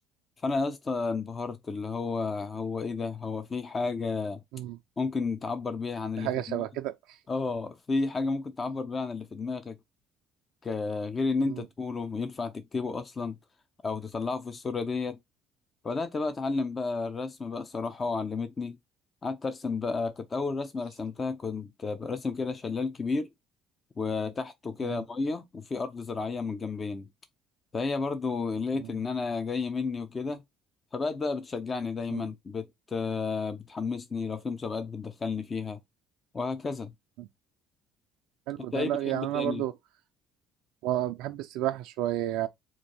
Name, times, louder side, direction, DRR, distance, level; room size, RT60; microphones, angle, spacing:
voice 1, 0.4-4.4 5.0-6.6 7.3-9.8 10.6-13.4 13.8-15.2 15.8-18.8 19.2-23.3 24.0-27.1 27.7-30.4 30.9-35.8 36.3-36.9 38.7-39.6, left 4 dB, 35° left, 0.6 m, -32 dB
voice 2, 6.2-7.2 11.5-11.6 24.8-25.0 28.8-28.9 32.1-32.2 37.2-37.3 38.5-39.7 40.8-42.5, right 13 dB, 70° right, 0.3 m, -31 dB
4.2 x 2.6 x 4.3 m
hypercardioid pair, 60°, 0 cm